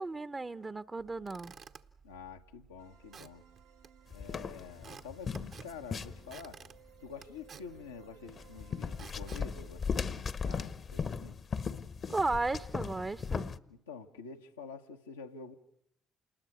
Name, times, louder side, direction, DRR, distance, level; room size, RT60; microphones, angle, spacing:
voice 1, 0.0-1.5 12.1-13.5, right 3 dB, 30° right, 0.8 m, -34 dB
Squeak / Wood, 1.0-10.6, right 6 dB, 55° right, 1.2 m, -55 dB
voice 2, 2.0-3.4 4.1-6.6 7.0-11.4 13.7-15.5, left 5 dB, 90° left, 1.1 m, -48 dB
sound 1, 2.8-9.7, right 9 dB, 90° right, 1.5 m, -61 dB
sound 2, 4.1-6.6 8.3-13.6, left 5 dB, 50° left, 1.0 m, -37 dB
28.0 x 20.5 x 6.5 m
hypercardioid pair, 45°, 0 cm